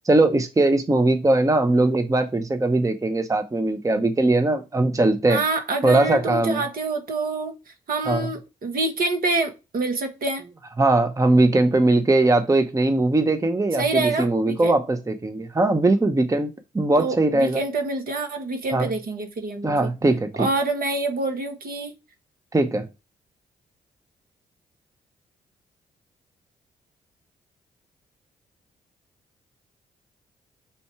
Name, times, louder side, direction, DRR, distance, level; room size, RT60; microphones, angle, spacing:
voice 1, 0.0-5.4 5.8-6.6 8.1-8.3 10.8-17.6 18.7-18.9 19.6-20.5 22.5-22.9, right 2 dB, 20° right, 0.8 m, -20 dB
voice 2, 5.3-7.5 7.9-10.4 13.8-14.8 17.0-19.9 20.4-22.0, right 3 dB, 55° right, 1.4 m, -26 dB
5.7 x 4.1 x 4.7 m
hypercardioid pair, 40°, 18 cm